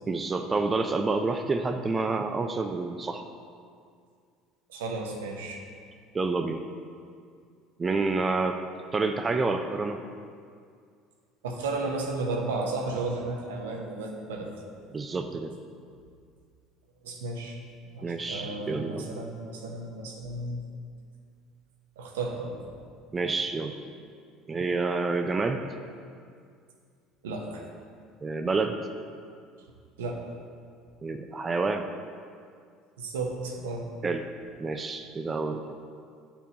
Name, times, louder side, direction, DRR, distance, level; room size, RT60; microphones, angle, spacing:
voice 1, 0.1-3.2 6.1-6.6 7.8-8.6 8.9-10.0 14.9-15.5 18.0-19.1 23.1-23.7 24.5-25.6 28.2-28.8 31.0-31.9 34.0-34.3 34.6-35.7, right 3 dB, 25° right, 6 dB, 0.4 m, -28 dB
voice 2, 4.7-5.6 11.4-14.5 17.0-17.6 17.9-20.6 22.0-22.5 27.2-27.6 30.0-30.2 33.0-33.8, right 3 dB, 85° right, 1 dB, 0.7 m, -33 dB
8.9 x 4.3 x 2.8 m, 2.2 s
hypercardioid pair, 70°, 0 cm